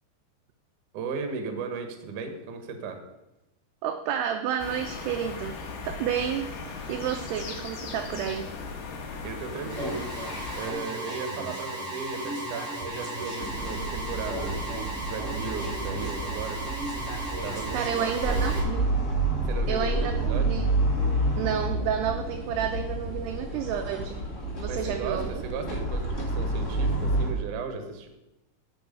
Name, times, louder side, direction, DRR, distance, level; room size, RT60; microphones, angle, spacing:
voice 1, 0.9-3.0 9.2-10.1 10.6-16.6 17.4-18.6 19.5-20.5 24.7-28.1, right 5 dB, 65° right, 6 dB, 2.1 m, -36 dB
voice 2, 3.8-5.6 5.8-6.5 6.9-8.5 17.7-18.8 19.7-20.7 21.4-24.2 24.6-25.3, right 8 dB, 80° right, 5 dB, 2.4 m, -30 dB
sound 1, 4.6-10.7, left 4 dB, 70° left, 3.3 m, -38 dB
Alarm, 9.7-18.6, right 1 dB, 10° right, 2.7 m, -35 dB
sound 2, 13.4-27.3, right 2 dB, 50° left, 0.9 m, -29 dB
10.5 x 7.6 x 5.4 m, 0.96 s
omnidirectional pair, 5.3 m